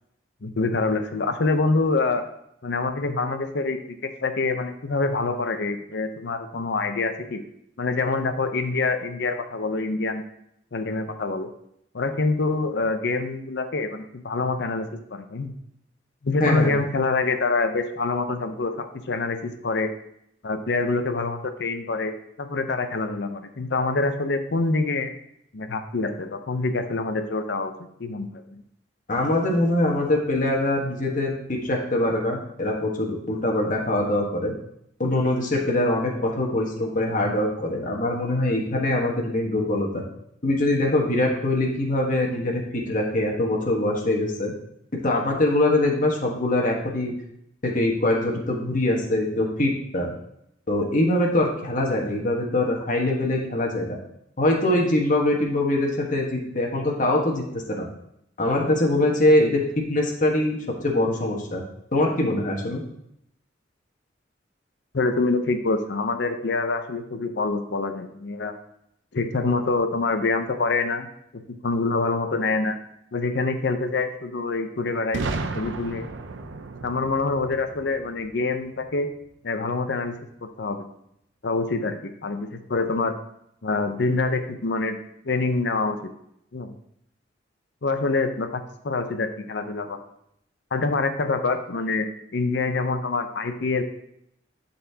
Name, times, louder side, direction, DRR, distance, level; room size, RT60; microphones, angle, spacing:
voice 1, 0.4-2.2 2.6-7.4 7.8-10.2 10.7-11.5 11.9-15.5 16.2-19.9 20.4-25.1 25.5-27.7 28.0-28.6 64.9-68.5 69.1-71.1 71.3-72.8 73.1-75.2 75.5-76.1 76.8-79.1 79.4-80.9 81.4-83.2 83.6-85.0 85.2-86.1 86.5-86.7 87.8-90.0 90.7-93.8, left 3 dB, 65° left, 8 dB, 0.7 m, -26 dB
voice 2, 16.4-16.7 29.1-34.5 35.0-40.0 40.4-44.5 44.9-47.1 47.6-50.1 50.7-54.0 54.4-57.4 57.7-57.8 58.4-61.6 61.9-62.8, left 1 dB, 45° left, -1 dB, 1.3 m, -23 dB
Boom, 75.1-79.0, right 3 dB, 90° right, 0.6 m, -34 dB
11.5 x 4.2 x 2.8 m, 0.75 s
head